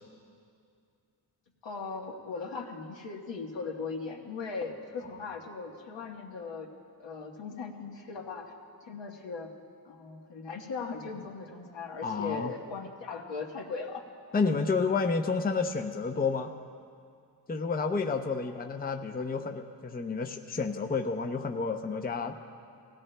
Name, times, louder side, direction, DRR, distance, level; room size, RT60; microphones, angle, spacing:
voice 1, 1.6-8.5 8.9-9.5 9.8-14.0 18.5-18.6, left 4 dB, 80° left, 1 dB, 1.4 m, -39 dB
voice 2, 12.0-12.5 14.3-16.5 17.5-22.4, left 4 dB, 20° left, 5 dB, 0.6 m, -30 dB
19.5 x 16.5 x 2.2 m, 2.3 s
cardioid pair, 85°, 43 cm